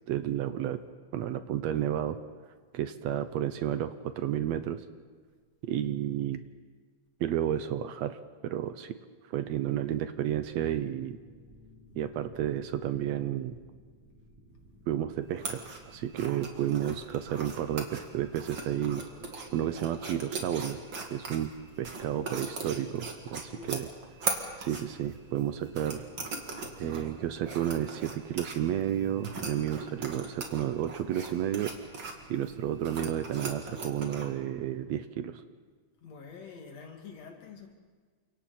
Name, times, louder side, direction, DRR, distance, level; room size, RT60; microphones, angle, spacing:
voice 1, 0.1-0.8 1.1-2.2 2.7-4.8 5.6-6.4 7.2-9.0 9.3-11.2 12.0-13.6 14.9-19.0 19.5-20.8 21.1-21.5 21.8-23.9 24.6-26.1 26.8-31.7 32.3-35.4, right 11 dB, 75° right, 10 dB, 1.9 m, -31 dB
sound 1, 10.3-19.3, equal, 90° right, 4.6 m, -57 dB
sound 2, 15.3-34.3, right 3 dB, 40° right, 2.7 m, -40 dB
voice 2, 23.4-23.8 36.0-37.7, left 5 dB, 60° left, 2 dB, 3.4 m, -47 dB
29.5 x 26.5 x 4.3 m, 1.5 s
omnidirectional pair, 3.4 m